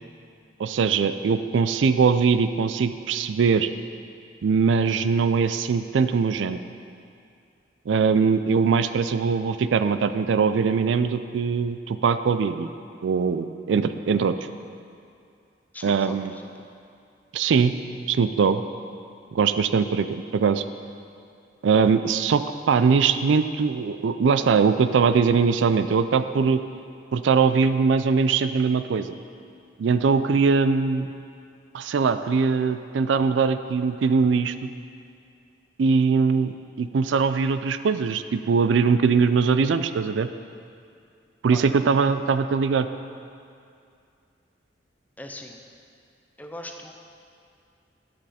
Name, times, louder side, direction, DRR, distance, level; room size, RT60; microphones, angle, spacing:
voice 1, 0.6-3.7 4.4-6.6 7.9-12.7 13.0-14.3 15.8-16.3 17.3-17.7 18.1-18.6 19.3-20.6 21.6-26.6 27.1-29.2 29.8-31.1 31.7-34.7 35.8-40.3 41.4-42.9, right 5 dB, 80° right, 11 dB, 0.4 m, -21 dB
voice 2, 15.7-16.7 41.5-41.8 45.2-45.6 46.4-46.9, left 1 dB, 10° left, 3 dB, 0.6 m, -40 dB
10.5 x 7.7 x 4.2 m, 2.4 s
head